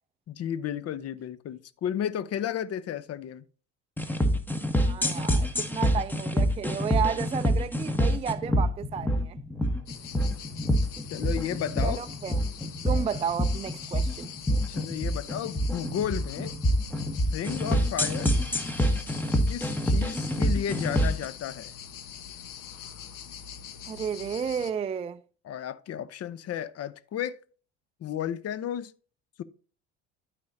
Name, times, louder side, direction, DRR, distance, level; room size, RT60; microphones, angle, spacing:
voice 1, 0.3-3.4 11.1-12.0 14.7-16.5 17.3-18.3 19.5-21.7 25.4-27.4 28.0-28.9 29.4-29.5, left 9 dB, 40° left, 0.8 m, -33 dB
sound 1, 4.0-21.3, equal, 5° left, 1.4 m, -26 dB
voice 2, 4.8-9.4 11.8-12.4 12.8-14.3 23.8-25.2, right 7 dB, 20° right, 0.4 m, -32 dB
sound 2, 9.9-24.7, left 8 dB, 60° left, 1.3 m, -43 dB
12.5 x 5.1 x 2.7 m
hypercardioid pair, 75°, 36 cm